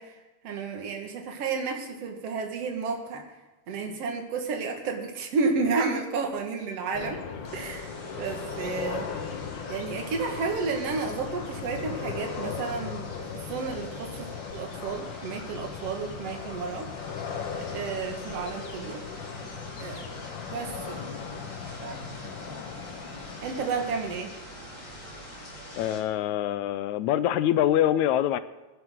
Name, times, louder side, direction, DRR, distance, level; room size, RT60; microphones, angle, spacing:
voice 1, 0.0-3.4 3.7-7.2 7.5-7.9 8.2-9.2 9.7-16.9 17.7-19.1 19.8-21.1 21.8-22.0 23.4-24.3, right 4 dB, 60° right, 3 dB, 2.6 m, -32 dB
sound 1, 6.9-24.2, left 6 dB, 60° left, 1.2 m, -38 dB
sound 2, 7.4-26.0, equal, 30° left, 4.1 m, -45 dB
voice 2, 25.7-28.4, left 11 dB, 85° left, 13 dB, 2.0 m, -24 dB
21.5 x 11.0 x 3.8 m, 1.2 s
omnidirectional pair, 3.3 m